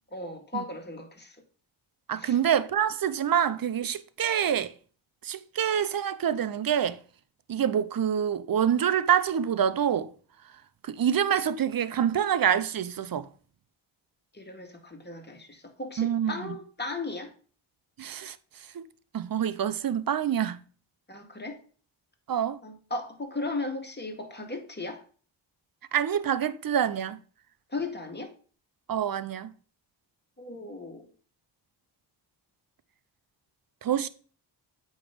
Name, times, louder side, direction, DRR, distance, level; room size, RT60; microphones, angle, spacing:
voice 1, 0.1-1.4 2.2-2.4 14.3-17.3 21.1-21.6 22.6-25.0 27.7-28.3 30.4-31.1, left 2 dB, 20° left, 2.0 m, -36 dB
voice 2, 2.1-4.7 5.2-7.0 7.5-10.1 10.8-13.3 16.0-16.5 18.0-18.4 18.7-18.8 19.1-20.6 22.3-22.6 25.9-27.2 28.9-29.5 33.8-34.1, right 9 dB, 45° right, 0.7 m, -26 dB
8.3 x 3.2 x 5.2 m
supercardioid pair, 45°, 47 cm